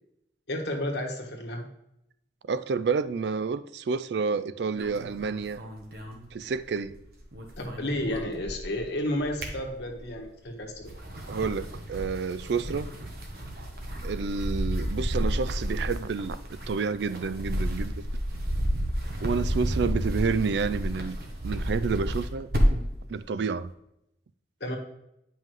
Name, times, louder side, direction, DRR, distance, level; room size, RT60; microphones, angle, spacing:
voice 1, 0.5-1.7 7.6-10.9 24.6-24.8, left 1 dB, 70° left, 1.4 m, -32 dB
voice 2, 2.5-5.6 6.3-6.9 11.3-12.9 14.0-16.4 16.7-18.0 19.2-21.2 21.4-22.5 23.1-23.7, right 5 dB, 75° right, 0.4 m, -29 dB
sound 1, 4.7-6.9 7.2-8.8 9.2-10.2 10.7-22.9, equal, 55° right, 1.2 m, -31 dB
9.1 x 5.5 x 3.2 m
head